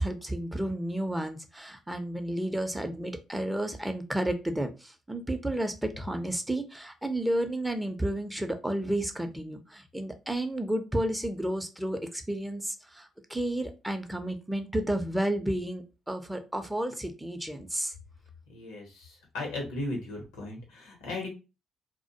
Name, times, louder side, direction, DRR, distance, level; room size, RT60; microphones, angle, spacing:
voice 1, 0.0-17.9, right 1 dB, 10° right, 7 dB, 0.5 m, -32 dB
voice 2, 18.5-21.3, left 2 dB, 80° left, 1 dB, 0.8 m, -36 dB
2.2 x 2.1 x 2.6 m, 0.29 s
hypercardioid pair, 50°, 0 cm